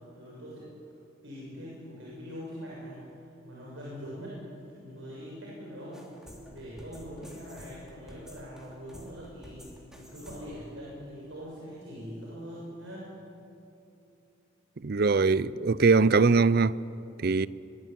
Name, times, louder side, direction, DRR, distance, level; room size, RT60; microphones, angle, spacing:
voice 1, 0.1-0.7 1.2-3.1 3.4-4.4 4.8-6.1 6.4-13.1, equal, 90° right, 7.0 m, -43 dB
sound 1, 5.9-10.7, equal, 5° right, 3.2 m, -50 dB
voice 2, 14.8-16.8 17.2-17.5, right 4 dB, 50° right, 0.5 m, -22 dB
23.0 x 22.0 x 9.2 m
head